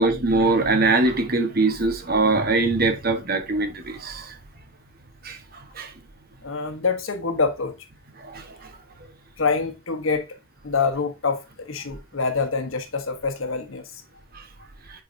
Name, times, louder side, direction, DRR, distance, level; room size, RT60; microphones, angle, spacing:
voice 1, 0.0-4.4 5.2-5.4 5.8-5.9 8.2-8.4, right 3 dB, 45° right, 1.2 m, -22 dB
voice 2, 6.4-7.8 9.4-10.3 10.6-14.0, left 4 dB, 75° left, 1.1 m, -26 dB
7.8 x 4.8 x 2.7 m
head